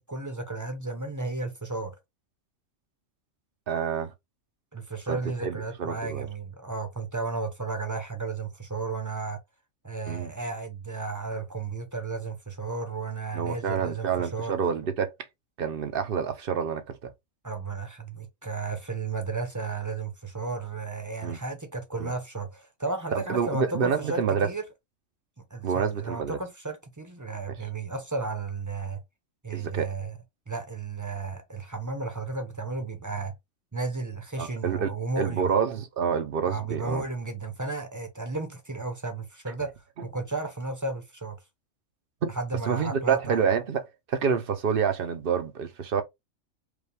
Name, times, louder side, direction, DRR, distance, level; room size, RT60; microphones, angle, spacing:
voice 1, 0.0-2.0 4.7-9.4 9.8-14.5 17.4-24.6 25.4-29.0 29.4-30.1 30.5-33.3 33.7-35.5 36.5-39.8 40.0-41.4 42.3-43.5, right 3 dB, 15° right, 0.7 m, -33 dB
voice 2, 3.7-4.1 5.1-6.3 10.1-10.3 13.3-15.1 15.6-17.1 21.2-21.4 22.0-22.1 23.1-24.5 25.6-26.4 29.5-29.9 34.4-37.0 42.2-42.3 42.7-43.8 44.1-46.0, right 7 dB, 50° right, 0.8 m, -28 dB
5.0 x 2.3 x 3.3 m
omnidirectional pair, 1.4 m